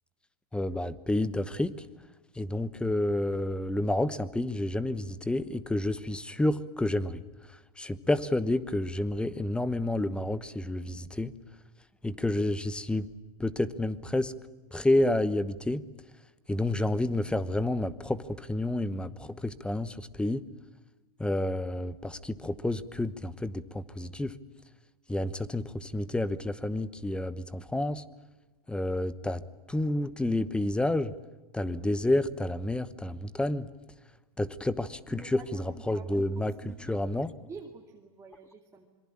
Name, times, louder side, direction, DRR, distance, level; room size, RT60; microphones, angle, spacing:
voice 1, 0.5-1.8 2.4-7.2 7.8-11.3 12.0-13.1 13.4-14.3 14.7-15.8 16.5-20.4 21.2-24.3 25.1-28.0 28.7-29.4 29.7-31.1 31.5-33.7 34.4-36.5 36.9-37.3, left 1 dB, 5° left, 16 dB, 1.0 m, -29 dB
voice 2, 35.1-38.9, right 5 dB, 15° right, 1 dB, 2.5 m, -48 dB
26.5 x 23.5 x 8.8 m, 1.1 s
hypercardioid pair, 130°, 19 cm